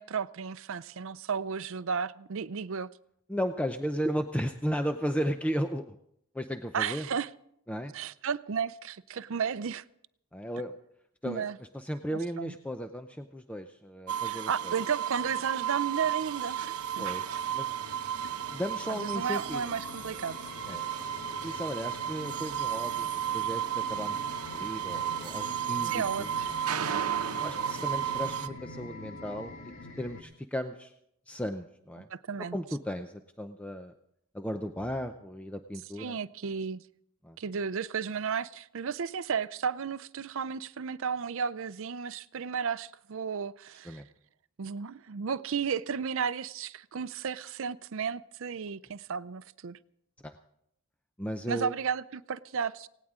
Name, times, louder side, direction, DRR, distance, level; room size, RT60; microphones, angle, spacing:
voice 1, 0.0-2.9 6.7-7.3 7.9-9.8 11.2-11.6 12.4-12.5 14.2-17.1 19.0-20.4 25.8-26.5 32.1-32.6 36.0-36.8 37.4-44.0 44.6-49.8 51.5-52.9, right 6 dB, 60° right, 16 dB, 0.5 m, -33 dB
voice 2, 3.3-6.0 6.3-7.1 7.7-7.9 10.3-10.8 11.2-14.7 17.0-17.2 17.5-17.7 18.5-19.8 20.7-20.8 21.4-24.2 24.5-26.3 27.3-29.7 30.0-30.9 31.3-32.1 32.4-33.9 34.3-36.2 37.2-37.4 43.8-44.1 50.2-50.4 51.2-51.8, equal, 5° left, 7 dB, 0.5 m, -35 dB
sound 1, 14.1-28.5, right 9 dB, 85° right, 0.8 m, -33 dB
sound 2, 16.0-30.2, left 3 dB, 65° left, 1.6 m, -46 dB
18.5 x 17.5 x 3.7 m, 0.74 s
head